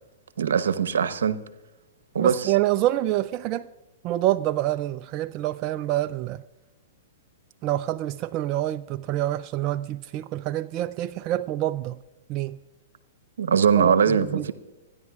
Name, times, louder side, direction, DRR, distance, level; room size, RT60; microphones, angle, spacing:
voice 1, 0.4-1.4 2.1-2.5 13.4-14.5, right 7 dB, 80° right, 0.9 m, -21 dB
voice 2, 2.2-3.7 4.0-6.4 7.6-12.0 12.3-12.6 13.8-14.5, right 14 dB, 35° right, 0.4 m, -27 dB
26.0 x 10.5 x 2.4 m
hypercardioid pair, 130°, 0 cm